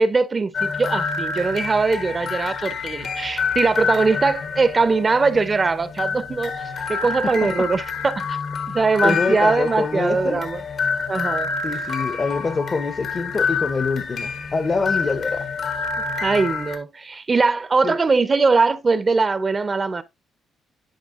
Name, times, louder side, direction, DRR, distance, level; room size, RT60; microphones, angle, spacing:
voice 1, 0.0-8.4 8.7-10.6 11.1-11.5 16.1-20.0, right 4 dB, 30° right, 0.6 m, -21 dB
sound 1, 0.5-16.8, left 5 dB, 65° left, 1.1 m, -27 dB
voice 2, 9.0-10.4 11.6-15.5 17.8-18.0, left 4 dB, 35° left, 0.7 m, -25 dB
10.5 x 5.0 x 2.5 m
cardioid pair, 90°, 0 cm